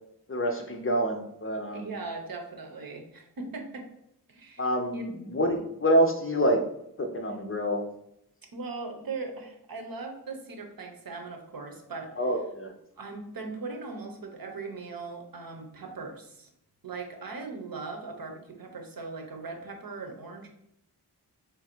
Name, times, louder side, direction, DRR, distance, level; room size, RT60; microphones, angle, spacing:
voice 1, 0.3-1.9 4.6-6.6 7.0-7.8 12.2-12.7, equal, 35° left, 3 dB, 0.5 m, -27 dB
voice 2, 1.7-3.9 4.3-4.7 4.9-5.1 5.6-5.7 8.5-12.1 13.0-16.5 16.8-20.5, right 3 dB, 60° right, 3 dB, 0.8 m, -39 dB
3.5 x 2.6 x 4.3 m, 0.78 s
wide cardioid pair, 85°, 40 cm